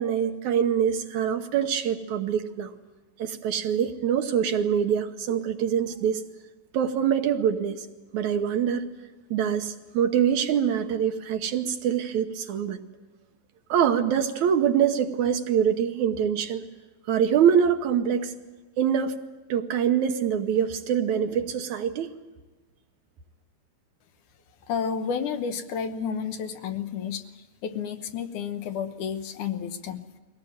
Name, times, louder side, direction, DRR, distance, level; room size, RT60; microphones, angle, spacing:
voice 1, 0.0-2.7 3.2-6.2 6.7-7.9 8.1-8.8 9.3-12.8 13.7-16.6 17.1-18.3 18.8-19.1 19.5-22.1, right 8 dB, 70° right, 7 dB, 2.2 m, -24 dB
voice 2, 24.7-30.0, left 7 dB, 70° left, 8 dB, 2.4 m, -31 dB
23.0 x 17.5 x 9.5 m, 1.2 s
omnidirectional pair, 3.8 m